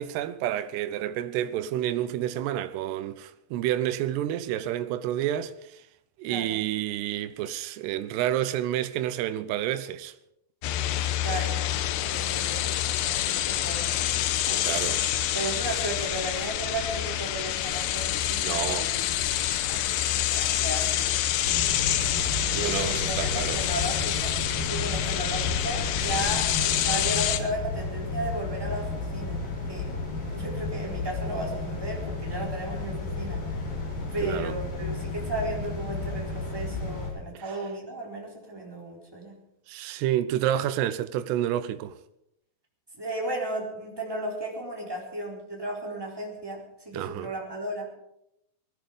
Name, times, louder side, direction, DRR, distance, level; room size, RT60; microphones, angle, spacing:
voice 1, 0.0-5.8 6.2-10.1 14.5-15.0 18.4-18.9 22.6-23.6 34.2-34.6 39.7-42.0 46.9-47.3, right 12 dB, 80° right, 2.8 m, -29 dB
voice 2, 6.3-6.6 11.2-12.7 13.0-13.9 14.5-14.7 15.3-19.4 19.7-19.8 20.1-21.1 22.5-29.9 30.3-33.7 34.1-39.4 43.0-47.9, right 1 dB, 5° right, 3.4 m, -35 dB
sound 1, 10.6-27.4, left 12 dB, 80° left, 2.9 m, -27 dB
sound 2, 21.4-37.1, left 3 dB, 55° left, 5.9 m, -33 dB
19.5 x 13.5 x 5.2 m
omnidirectional pair, 5.0 m